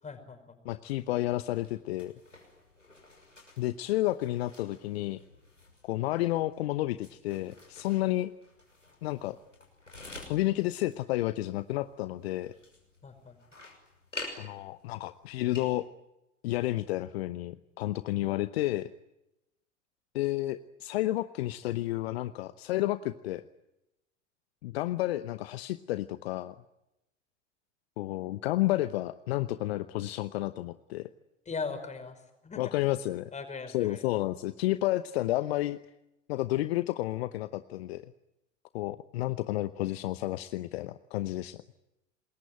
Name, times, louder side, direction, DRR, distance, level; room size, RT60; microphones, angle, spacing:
voice 1, 0.0-0.6 13.0-13.4 31.5-33.0 33.3-34.1, left 4 dB, 20° left, 7 dB, 5.5 m, -40 dB
voice 2, 0.6-2.1 3.6-5.2 5.8-8.3 9.0-9.4 10.3-12.5 14.4-15.9 16.4-18.9 20.1-23.4 24.6-26.5 28.0-31.1 32.6-33.3 33.7-35.8 36.3-38.1 38.7-41.6, left 16 dB, 55° left, 13 dB, 0.9 m, -31 dB
sound 1, 0.9-15.7, left 2 dB, 90° left, 6.1 m, -50 dB
27.0 x 21.5 x 9.3 m, 0.91 s
figure-of-eight pair, 75°, 37 cm